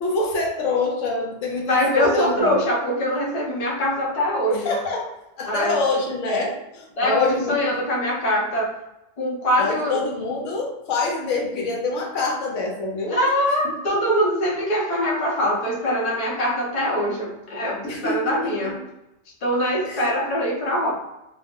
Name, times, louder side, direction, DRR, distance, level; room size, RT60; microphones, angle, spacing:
voice 1, 0.0-2.6 4.5-5.1 5.4-7.8 9.6-13.3 13.6-13.8 17.8-18.7 19.8-20.2, left 3 dB, 80° left, 0 dB, 1.0 m, -26 dB
voice 2, 1.7-4.7 5.5-5.8 7.0-8.7 9.2-10.0 13.1-18.8 19.4-20.9, equal, 40° left, -3 dB, 0.7 m, -23 dB
2.5 x 2.0 x 3.5 m, 0.92 s
omnidirectional pair, 1.3 m